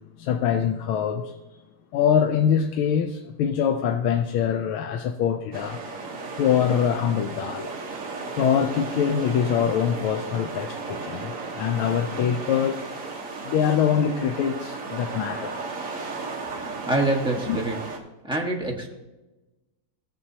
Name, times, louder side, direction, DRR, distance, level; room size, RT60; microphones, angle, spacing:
voice 1, 0.2-1.4 1.9-5.8 6.4-7.7 8.4-12.9 13.4-15.6 17.5-17.6, left 8 dB, 85° left, 1.5 m, -24 dB
sound 1, 5.5-18.0, right 3 dB, 45° right, 1.4 m, -35 dB
voice 2, 16.5-17.8 18.2-18.9, right 1 dB, 5° right, 1.1 m, -26 dB
16.5 x 7.4 x 2.8 m
omnidirectional pair, 2.3 m